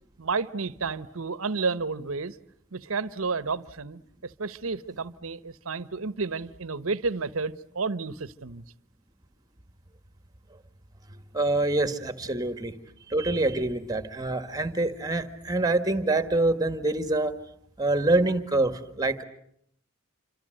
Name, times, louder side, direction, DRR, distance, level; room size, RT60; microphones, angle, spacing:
voice 1, 0.2-2.4 2.7-8.6, right 4 dB, 80° right, 1.1 m, -31 dB
voice 2, 11.3-12.8 13.1-17.4 17.8-19.2, right 2 dB, 20° right, 1.8 m, -25 dB
28.0 x 26.0 x 7.8 m
head